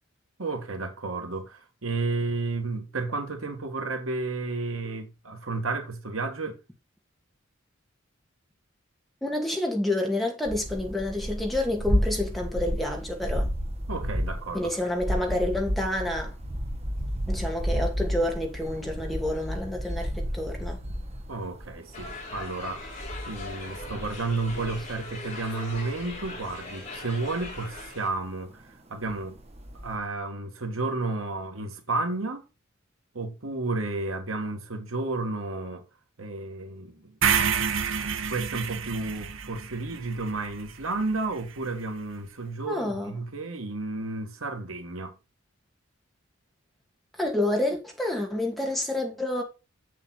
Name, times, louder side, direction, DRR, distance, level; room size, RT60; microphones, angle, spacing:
voice 1, 0.4-6.6 13.9-14.7 21.3-22.8 23.3-29.4 29.8-32.4 33.1-35.8 36.2-37.2 38.3-45.2, right 3 dB, 90° right, 1.8 m, -32 dB
voice 2, 9.2-13.5 14.5-16.3 17.3-20.8 42.7-43.1 47.2-49.4, left 1 dB, ahead, 2.3 m, -29 dB
sound 1, 10.4-28.2 28.6-28.7 29.0-30.0, equal, 30° right, 1.2 m, -32 dB
sound 2, 21.9-28.1, left 2 dB, 35° left, 3.3 m, -40 dB
sound 3, 37.2-41.4, right 7 dB, 70° right, 0.8 m, -29 dB
7.4 x 7.1 x 4.2 m
head